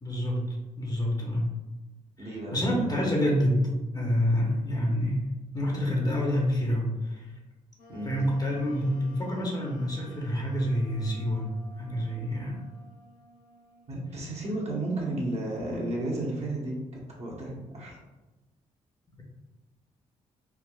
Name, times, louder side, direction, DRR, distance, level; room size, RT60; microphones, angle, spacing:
voice 1, 0.0-0.5 0.8-1.5 2.2-7.3 8.0-11.5 11.8-12.6, equal, 25° left, -1 dB, 0.8 m, -27 dB
voice 2, 2.2-2.9 7.9-8.1 13.9-18.0, right 1 dB, 50° right, -4 dB, 0.9 m, -33 dB
Wind instrument woodwind instrument, 7.8-15.2, equal, 80° left, 0.9 m, -54 dB
3.4 x 2.1 x 2.3 m, 1.1 s
supercardioid pair, 60°, 15 cm